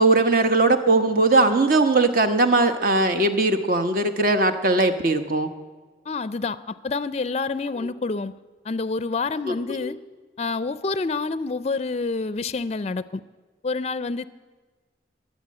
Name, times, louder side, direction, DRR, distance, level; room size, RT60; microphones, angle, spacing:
voice 1, 0.0-5.5 9.5-9.9, right 2 dB, 55° right, 7 dB, 1.1 m, -20 dB
voice 2, 6.1-8.3 8.6-10.0 10.4-13.2 13.6-14.2, left 3 dB, 35° left, 15 dB, 0.4 m, -28 dB
21.5 x 7.5 x 8.7 m, 1.4 s
head